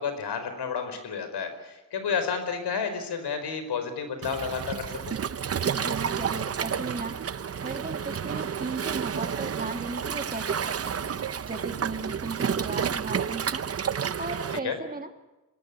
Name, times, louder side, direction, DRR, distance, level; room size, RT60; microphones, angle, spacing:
voice 1, 0.0-5.1 14.6-14.7, left 6 dB, 80° left, 8 dB, 4.9 m, -31 dB
Waves surf, 4.2-14.6, right 7 dB, 40° right, 0.8 m, -30 dB
voice 2, 5.7-7.2 7.6-11.1 11.4-13.6 14.2-15.1, right 3 dB, 20° right, 5 dB, 2.5 m, -36 dB
25.0 x 20.0 x 8.4 m, 1.1 s
cardioid pair, 115°, 39 cm